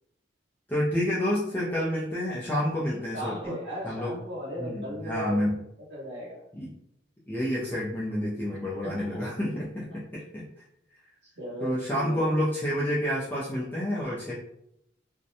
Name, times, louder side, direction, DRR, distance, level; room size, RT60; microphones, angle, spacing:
voice 1, 0.7-3.5 3.8-4.1 4.6-5.6 6.5-6.7 7.3-10.4 11.6-14.3, equal, 10° left, -8 dB, 0.3 m, -29 dB
voice 2, 3.1-5.5 5.9-6.4 8.5-9.2 11.3-12.2, equal, 65° right, -6 dB, 1.3 m, -37 dB
2.5 x 2.1 x 2.6 m, 0.80 s
head